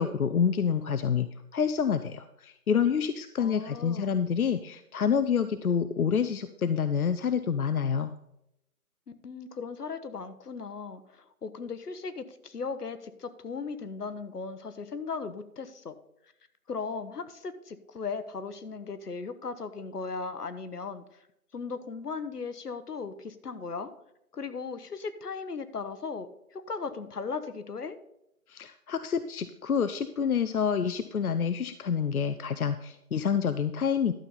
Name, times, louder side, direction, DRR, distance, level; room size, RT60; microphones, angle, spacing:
voice 1, 0.0-8.1 28.5-34.1, left 7 dB, 70° left, 11 dB, 0.6 m, -28 dB
voice 2, 3.4-4.1 9.1-15.9 16.7-21.0 21.5-23.9 24.3-28.0, left 4 dB, 85° left, 11 dB, 1.2 m, -37 dB
12.0 x 7.0 x 4.0 m, 0.81 s
figure-of-eight pair, 175°, 45 cm